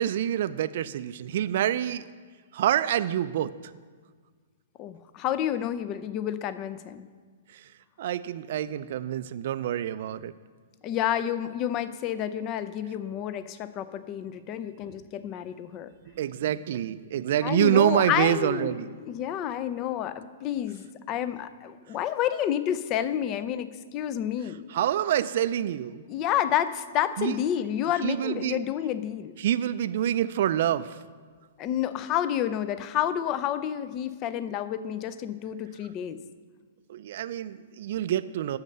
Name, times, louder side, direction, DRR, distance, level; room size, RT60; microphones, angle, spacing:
voice 1, 0.0-2.0 2.5-3.7 7.5-7.7 8.0-10.3 16.1-18.9 24.4-26.0 27.2-27.4 28.0-28.6 29.4-31.0 36.9-38.6, right 11 dB, 60° right, 13 dB, 0.3 m, -27 dB
voice 2, 4.8-7.1 10.8-15.9 17.4-18.7 19.0-24.6 26.1-29.3 31.6-36.2, left 10 dB, 35° left, 13 dB, 0.5 m, -29 dB
8.1 x 6.6 x 6.7 m, 1.5 s
hypercardioid pair, 135°, 0 cm